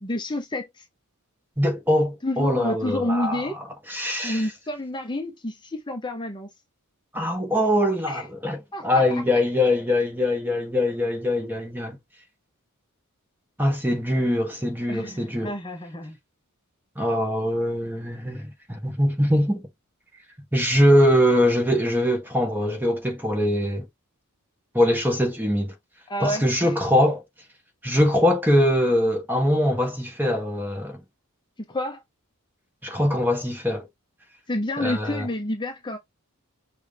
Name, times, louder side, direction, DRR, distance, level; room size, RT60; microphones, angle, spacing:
voice 1, 0.0-0.8 2.2-3.6 4.2-6.5 8.1-8.2 8.7-9.0 14.9-16.2 26.1-26.8 31.6-32.0 34.5-36.0, left 1 dB, 20° left, 0.8 m, -29 dB
voice 2, 1.6-3.5 3.9-4.5 7.1-12.0 13.6-15.5 17.0-19.6 20.5-23.9 24.7-25.7 26.2-27.2 27.8-31.0 32.8-33.9 34.8-35.3, left 1 dB, 10° right, 1.4 m, -22 dB
6.2 x 2.4 x 3.4 m
head